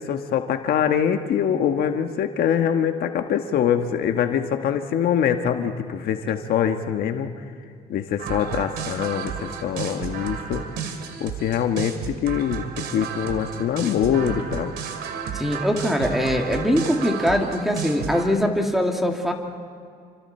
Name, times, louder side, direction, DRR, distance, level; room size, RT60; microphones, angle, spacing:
voice 1, 0.0-7.3 7.9-10.6 11.2-12.6 12.9-14.7, left 8 dB, 65° left, 6 dB, 1.4 m, -24 dB
sound 1, 8.2-18.3, right 7 dB, 75° right, 2.5 m, -32 dB
voice 2, 15.3-19.3, equal, ahead, 2 dB, 2.6 m, -22 dB
29.0 x 25.5 x 4.4 m, 2.2 s
cardioid pair, 110°, 17 cm